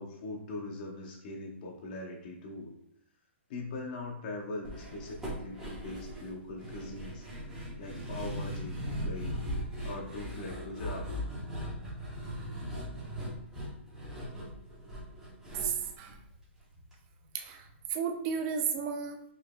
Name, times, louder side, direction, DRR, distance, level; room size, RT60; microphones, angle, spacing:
voice 1, 0.0-2.7 3.5-7.2 7.8-9.3 9.8-11.1, left 2 dB, 40° left, -2 dB, 0.7 m, -41 dB
sound 1, 4.6-16.9 17.2-17.3 17.7-17.8, equal, 5° right, 1.1 m, -39 dB
voice 2, 15.5-16.1 17.3-17.6 17.9-19.2, right 7 dB, 30° right, 5 dB, 0.5 m, -33 dB
4.9 x 3.0 x 2.2 m, 0.74 s
hypercardioid pair, 150°, 7 cm